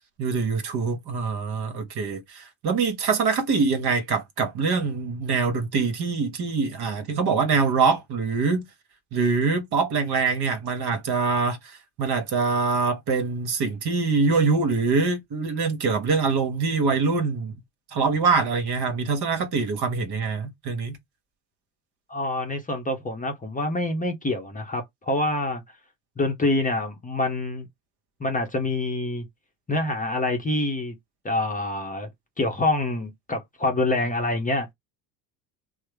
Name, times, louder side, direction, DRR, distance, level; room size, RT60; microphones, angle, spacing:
voice 1, 0.2-8.6 9.1-17.5 17.9-21.0, right 4 dB, 50° right, 1.1 m, -24 dB
voice 2, 22.1-25.6 26.2-27.7 28.2-29.3 29.7-31.0 31.2-32.1 32.4-34.7, left 2 dB, 15° left, 0.7 m, -26 dB
3.1 x 2.0 x 3.3 m
hypercardioid pair, 70°, 50 cm